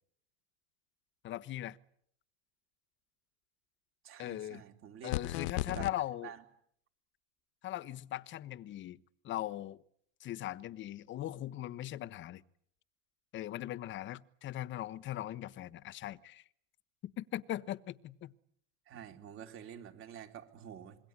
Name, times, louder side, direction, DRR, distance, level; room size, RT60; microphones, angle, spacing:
voice 1, 1.2-1.8 4.2-4.6 5.0-6.3 7.6-9.0 9.2-9.8 10.2-12.4 13.3-16.4 17.0-18.3, left 13 dB, 35° left, 1.1 m, -40 dB
voice 2, 4.0-5.1 5.7-5.9 6.2-6.4 18.9-21.0, right 9 dB, 40° right, 3.9 m, -48 dB
sound 1, 5.1-5.9, left 16 dB, 75° left, 1.1 m, -34 dB
26.5 x 22.5 x 9.8 m
supercardioid pair, 125°, 33 cm